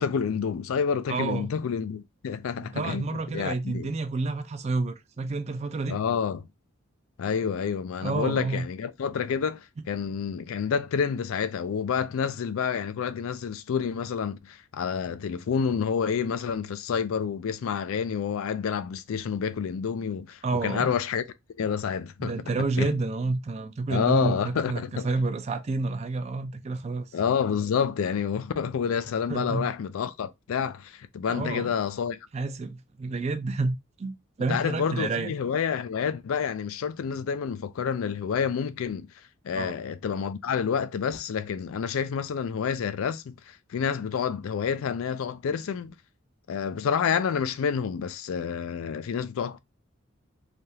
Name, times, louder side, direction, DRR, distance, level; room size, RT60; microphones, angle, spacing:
voice 1, 0.0-3.9 5.9-6.5 7.2-21.2 21.6-22.3 22.8-23.0 23.9-25.1 27.1-32.2 34.5-39.1 39.4-45.9 46.5-49.6, left 7 dB, 85° left, 0.4 m, -28 dB
voice 2, 1.1-1.5 2.6-6.0 8.0-8.7 20.4-20.9 22.2-27.1 29.3-29.7 31.3-31.7 32.3-35.3 39.5-39.8, right 3 dB, 30° right, 0.3 m, -29 dB
3.4 x 2.3 x 2.7 m
head